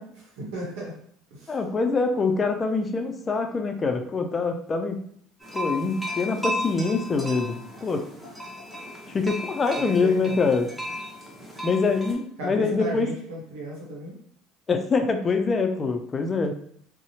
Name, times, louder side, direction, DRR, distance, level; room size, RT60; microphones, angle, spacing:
voice 1, 0.4-1.0 1.3-1.6 9.8-10.4 12.4-14.2, right 1 dB, 80° right, -4 dB, 0.8 m, -35 dB
voice 2, 1.5-5.0 5.5-8.0 9.1-10.7 11.6-13.1 14.7-16.5, left 4 dB, 30° left, 6 dB, 0.4 m, -24 dB
sound 1, 5.4-12.1, left 1 dB, 10° right, 0.8 m, -35 dB
2.7 x 2.0 x 2.7 m, 0.64 s
hypercardioid pair, 80°, 0 cm